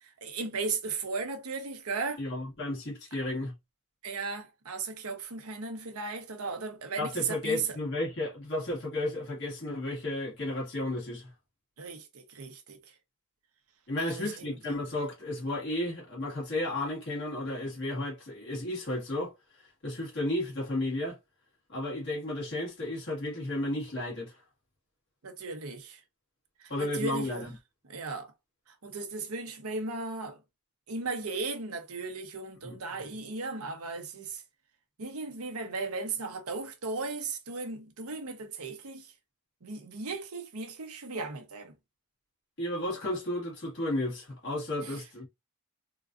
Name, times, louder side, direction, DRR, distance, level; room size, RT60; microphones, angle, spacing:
voice 1, 0.0-2.2 4.0-7.8 11.8-12.8 14.0-14.6 25.2-26.0 26.6-27.5 27.9-28.3 28.8-30.4 30.9-34.4 35.0-39.1 39.6-41.7 44.8-45.0, right 4 dB, 80° right, 0.9 m, -36 dB
voice 2, 2.2-3.5 7.0-11.3 13.9-21.2 21.7-24.4 26.7-27.6 32.6-32.8 42.6-45.3, left 1 dB, 50° left, 1.8 m, -33 dB
3.7 x 2.6 x 2.5 m
head